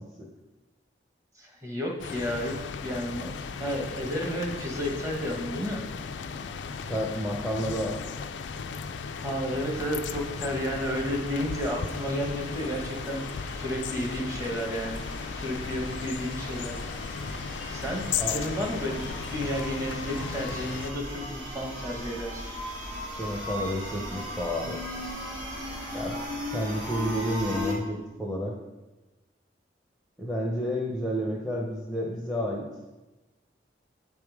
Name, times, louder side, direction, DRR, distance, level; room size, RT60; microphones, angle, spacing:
voice 1, 1.4-2.5 2.8-5.8 9.2-15.0 15.3-16.8 17.7-22.5, equal, 15° right, 0 dB, 1.0 m, -32 dB
sound 1, 2.0-20.9, left 6 dB, 75° left, 0.4 m, -36 dB
voice 2, 6.9-8.0 18.2-18.3 23.2-24.8 25.9-26.2 26.5-28.5 30.2-32.6, equal, ahead, -3 dB, 0.6 m, -30 dB
sound 2, 9.1-27.7, left 1 dB, 85° right, 2.1 m, -38 dB
8.4 x 3.6 x 4.7 m, 1.1 s
head